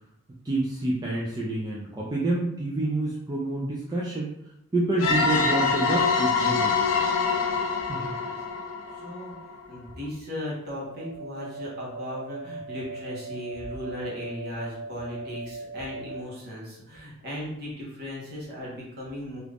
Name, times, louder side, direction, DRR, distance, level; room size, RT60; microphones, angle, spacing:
voice 1, 0.4-4.3 4.7-6.8 7.9-8.1, right 2 dB, 20° right, -5 dB, 0.4 m, -28 dB
sound 1, 5.0-9.6, left 4 dB, 65° left, 0.5 m, -25 dB
voice 2, 7.9-8.3 9.0-9.3 9.7-19.4, left 1 dB, 45° right, -5 dB, 1.2 m, -37 dB
sound 2, 10.8-16.2, right 3 dB, 90° right, 0.3 m, -39 dB
2.9 x 2.4 x 3.4 m, 0.82 s
head